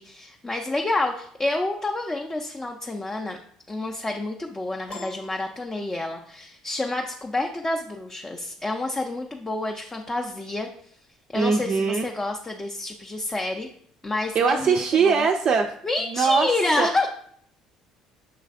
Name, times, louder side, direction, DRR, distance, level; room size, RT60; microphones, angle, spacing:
voice 1, 0.0-3.4 3.7-10.7 11.3-13.7 14.0-15.3 15.8-17.1, left 2 dB, 20° left, 2 dB, 0.5 m, -28 dB
Piano, 4.9-6.4, left 2 dB, 60° left, 1.0 m, -43 dB
voice 2, 11.3-12.1 14.3-15.7 16.1-16.5 16.8-16.9, right 5 dB, 45° right, 3 dB, 0.3 m, -21 dB
6.7 x 3.1 x 2.4 m, 0.63 s
hypercardioid pair, 60°, 2 cm